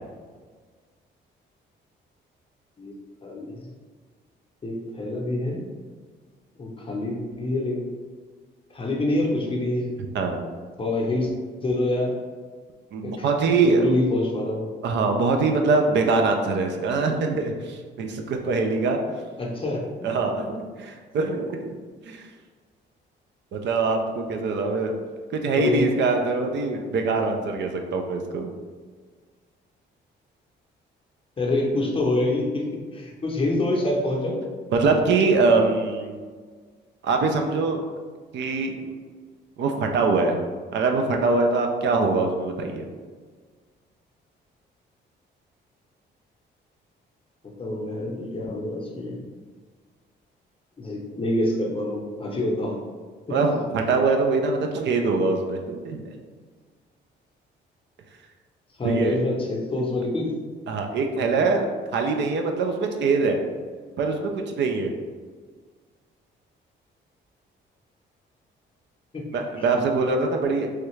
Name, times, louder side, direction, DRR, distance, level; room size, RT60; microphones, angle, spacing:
voice 1, 3.2-3.7 4.6-5.7 6.6-7.9 8.7-9.9 10.8-11.3 11.6-12.2 13.0-13.3 13.6-14.7 19.4-19.9 25.6-26.0 31.4-34.4 47.4-49.2 50.8-52.8 53.3-53.4 58.8-60.4 61.3-61.5 69.1-69.2, left 2 dB, 25° left, -1 dB, 0.7 m, -26 dB
voice 2, 10.1-10.5 12.9-13.9 14.8-19.2 20.0-21.7 22.0-22.3 23.5-25.0 25.3-28.5 34.7-36.2 37.0-37.8 38.3-38.8 39.6-40.4 40.7-42.9 53.3-56.1 58.8-59.2 60.7-61.7 61.9-63.4 64.0-64.9 69.3-70.7, right 3 dB, 65° right, 4 dB, 0.4 m, -23 dB
3.1 x 2.3 x 3.1 m, 1.5 s
cardioid pair, 90°, 20 cm